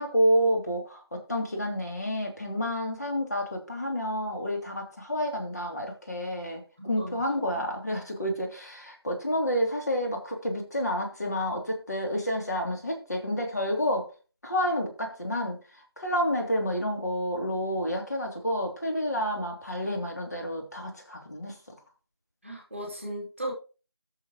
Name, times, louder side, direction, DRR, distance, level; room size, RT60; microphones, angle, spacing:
voice 1, 0.0-14.1 14.4-15.6 16.0-21.6, equal, 40° left, 1 dB, 2.9 m, -29 dB
voice 2, 6.8-7.6 22.4-23.5, right 1 dB, ahead, -6 dB, 2.2 m, -37 dB
18.0 x 7.0 x 3.0 m, 0.34 s
figure-of-eight pair, 170°, 13 cm